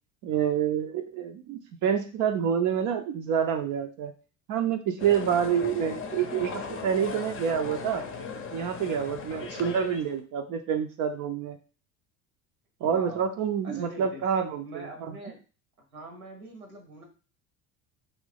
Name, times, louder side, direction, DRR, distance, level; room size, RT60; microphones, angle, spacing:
voice 1, 0.2-4.1 4.5-8.0 8.5-11.6 12.8-15.2, right 8 dB, 50° right, 5 dB, 0.5 m, -27 dB
sound 1, 5.0-10.2, left 4 dB, 30° left, 0.6 m, -38 dB
voice 2, 5.6-5.9 9.3-9.7 12.8-13.2 13.6-14.2 14.6-15.4 15.9-17.0, right 1 dB, 90° right, 3 dB, 1.1 m, -43 dB
3.0 x 2.6 x 3.3 m, 0.36 s
hypercardioid pair, 70°, 42 cm